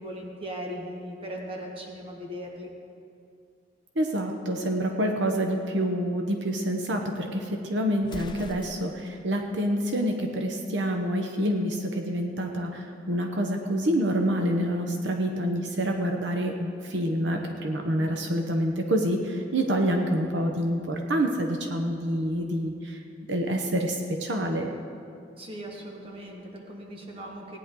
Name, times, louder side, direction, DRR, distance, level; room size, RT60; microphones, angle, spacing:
voice 1, 0.0-2.7 18.0-18.5 25.4-27.6, equal, 30° right, -1 dB, 1.5 m, -39 dB
voice 2, 4.0-23.0 23.3-24.7, equal, 75° right, 3 dB, 0.9 m, -27 dB
Explosion, 8.0-9.2, left 2 dB, 25° left, 0.5 m, -42 dB
17.5 x 9.9 x 3.8 m, 2.5 s
head